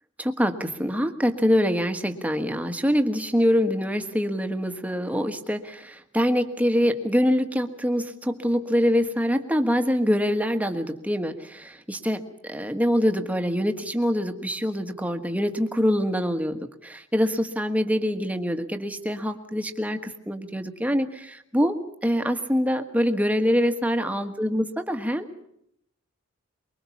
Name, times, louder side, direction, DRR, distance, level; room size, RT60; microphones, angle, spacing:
voice 1, 0.2-25.5, equal, 5° right, 7 dB, 1.5 m, -25 dB
24.0 x 23.0 x 7.2 m, 0.71 s
head